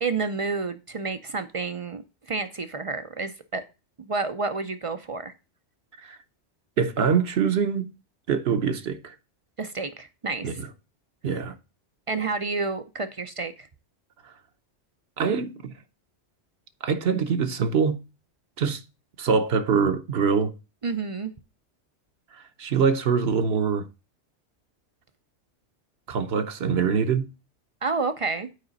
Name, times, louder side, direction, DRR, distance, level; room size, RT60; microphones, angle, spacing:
voice 1, 0.0-3.6 4.0-5.3 9.6-10.6 12.1-13.7 20.8-21.3 27.8-28.5, right 4 dB, 50° right, 0.4 m, -30 dB
voice 2, 6.8-7.9 8.3-9.1 10.4-10.7 11.2-11.5 15.2-15.7 16.8-18.0 18.6-18.8 19.2-20.5 22.3-23.9 26.1-27.3, right 6 dB, 65° right, 1.0 m, -24 dB
8.3 x 4.9 x 3.9 m
omnidirectional pair, 1.2 m